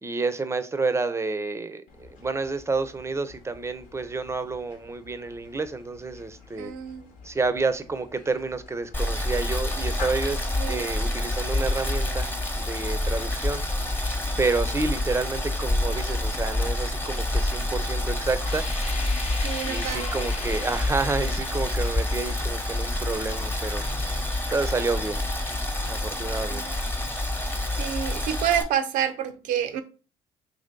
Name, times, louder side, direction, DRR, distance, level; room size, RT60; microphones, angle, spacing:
voice 1, 0.0-6.7 7.2-12.3 12.6-13.6 14.4-18.7 19.6-23.8 24.5-25.2 25.9-26.7, right 3 dB, 20° right, 0.5 m, -29 dB
sound 1, 1.9-20.5, left 4 dB, 80° left, 0.9 m, -48 dB
voice 2, 6.6-7.0 10.6-10.9 19.4-20.3 26.5-26.7 27.8-29.8, right 9 dB, 80° right, 0.4 m, -28 dB
Boiling, 8.9-28.6, left 1 dB, 15° left, 0.8 m, -28 dB
sound 2, 18.4-25.2, left 3 dB, 50° left, 0.8 m, -41 dB
3.0 x 2.7 x 3.7 m
supercardioid pair, 65°, 14 cm